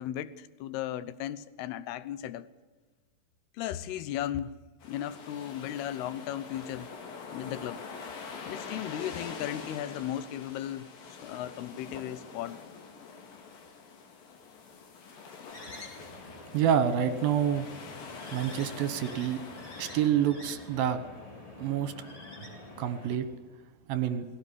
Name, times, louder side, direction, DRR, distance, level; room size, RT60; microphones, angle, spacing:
voice 1, 0.0-2.5 3.5-4.6 4.8-6.9 7.3-7.8 8.4-10.9 11.2-12.6, left 11 dB, 75° left, 2.8 m, -36 dB
sound 1, 4.8-20.1, left 5 dB, 60° left, 3.8 m, -45 dB
sound 2, 15.5-23.2, left 2 dB, 30° left, 4.5 m, -47 dB
voice 2, 16.5-17.7 18.3-19.4 19.8-21.0 21.6-21.9 22.8-23.3 23.9-24.2, right 9 dB, 70° right, 2.7 m, -27 dB
19.5 x 17.0 x 10.0 m
omnidirectional pair, 4.8 m